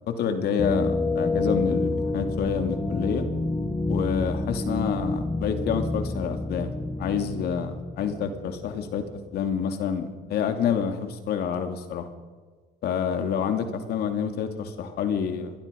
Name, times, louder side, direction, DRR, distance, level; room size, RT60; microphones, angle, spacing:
voice 1, 0.1-3.3 3.9-6.7 7.0-12.1 12.8-15.5, left 7 dB, 70° left, 7 dB, 2.7 m, -28 dB
sound 1, 0.6-9.3, left 2 dB, 15° left, 1.9 m, -29 dB
27.0 x 21.5 x 5.4 m, 1.4 s
cardioid pair, 110°, 17 cm